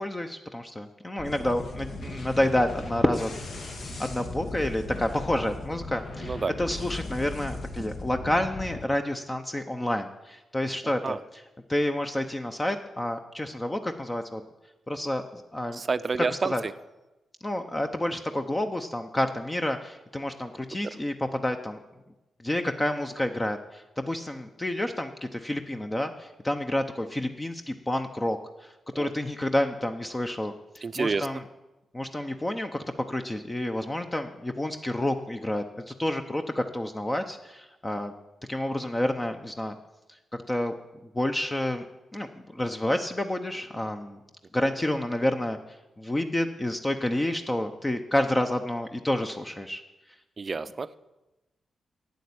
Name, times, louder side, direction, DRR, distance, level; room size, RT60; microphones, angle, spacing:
voice 1, 0.0-3.3 4.0-11.4 11.7-14.4 14.9-15.8 16.2-16.6 17.4-21.8 22.4-31.4 31.9-38.1 38.5-39.8 40.5-40.7 41.1-41.8 42.1-42.3 42.5-44.2 44.5-45.6 46.0-49.8, left 1 dB, 20° left, 6 dB, 0.7 m, -29 dB
sound 1, 1.2-8.8, left 2 dB, 60° left, 1.5 m, -37 dB
voice 2, 15.7-16.5 29.0-29.1 30.8-31.3 50.4-51.0, right 4 dB, 40° right, 14 dB, 0.5 m, -28 dB
8.5 x 7.8 x 8.6 m, 1.0 s
cardioid pair, 65°, 0 cm